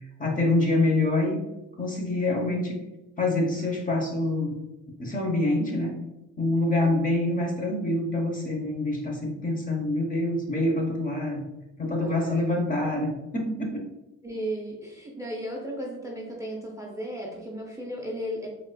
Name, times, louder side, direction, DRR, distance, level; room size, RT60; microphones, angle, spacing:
voice 1, 0.2-1.4 1.8-2.8 3.2-4.6 5.0-6.0 6.4-11.4 11.8-13.8, left 2 dB, 25° left, 0 dB, 0.8 m, -26 dB
voice 2, 12.0-12.4 14.2-18.5, equal, 10° right, -2 dB, 0.6 m, -35 dB
4.0 x 2.4 x 2.2 m, 0.95 s
cardioid pair, 90°, 30 cm